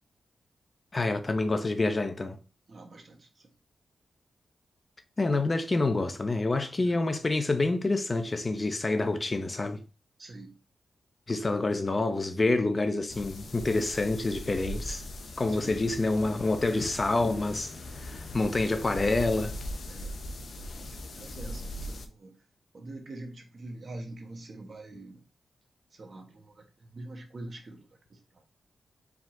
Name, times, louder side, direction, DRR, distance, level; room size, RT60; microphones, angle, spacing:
voice 1, 0.9-2.4 5.2-9.8 11.3-15.0 15.4-17.7 18.0-19.6, left 2 dB, 30° left, 0.6 m, -27 dB
voice 2, 2.7-3.2 6.9-7.0 10.2-10.5 15.5-15.8 19.9-20.1 20.8-22.3 22.7-25.2 26.0-26.5 26.9-27.8, right 2 dB, 50° right, 1.2 m, -44 dB
sound 1, 13.1-22.1, left 1 dB, 65° left, 0.7 m, -40 dB
4.7 x 3.8 x 2.6 m
cardioid pair, 85°, 0 cm